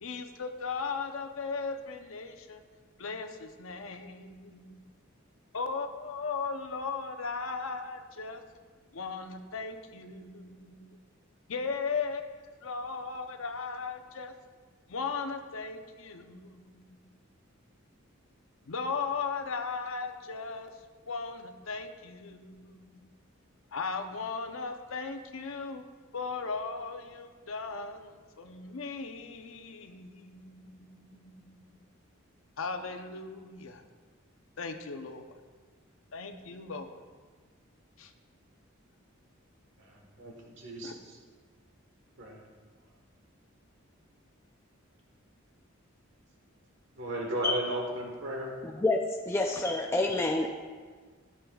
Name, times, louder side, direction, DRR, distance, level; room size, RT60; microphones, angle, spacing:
voice 1, 0.0-2.6 3.0-4.8 5.5-8.4 8.9-11.0 11.5-14.3 14.9-17.0 18.7-20.7 21.1-23.1 23.7-25.8 26.1-31.8 32.6-33.8 34.6-35.2 36.1-37.0 38.0-38.1 40.8-40.9, left 4 dB, 75° left, 6 dB, 0.7 m, -37 dB
voice 2, 47.0-48.5, right 1 dB, 60° right, 0 dB, 1.3 m, -34 dB
voice 3, 48.6-50.5, left 2 dB, 10° left, 1 dB, 0.4 m, -28 dB
13.5 x 7.5 x 2.3 m, 1.5 s
head